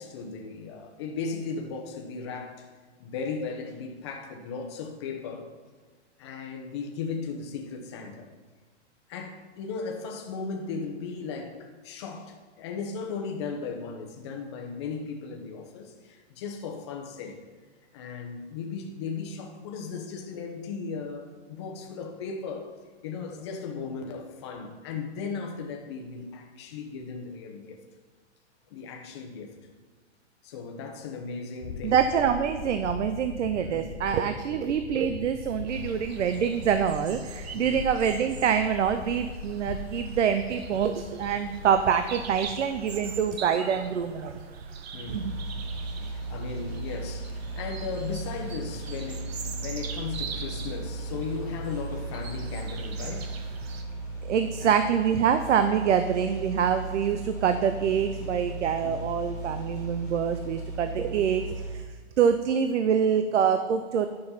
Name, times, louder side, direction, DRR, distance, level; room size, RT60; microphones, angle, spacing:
voice 1, 0.0-2.7 3.0-5.5 6.2-8.3 9.1-17.4 17.9-22.7 23.0-27.8 28.7-29.5 30.4-32.0 33.6-33.9 37.5-37.8 44.9-45.3 46.1-53.3 54.6-54.9 58.8-59.0, left 5 dB, 25° left, 2 dB, 0.9 m, -36 dB
sound 1, 31.6-43.4, left 6 dB, 70° left, 0.7 m, -41 dB
voice 2, 31.8-44.4 45.1-45.4 54.2-61.8 62.2-64.1, right 7 dB, 80° right, 9 dB, 0.8 m, -25 dB
sound 2, 35.7-53.8, right 5 dB, 60° right, 1.1 m, -42 dB
sound 3, 45.0-61.7, right 2 dB, 10° right, 3.6 m, -36 dB
10.5 x 6.5 x 5.6 m, 1.4 s
hypercardioid pair, 175°, 35 cm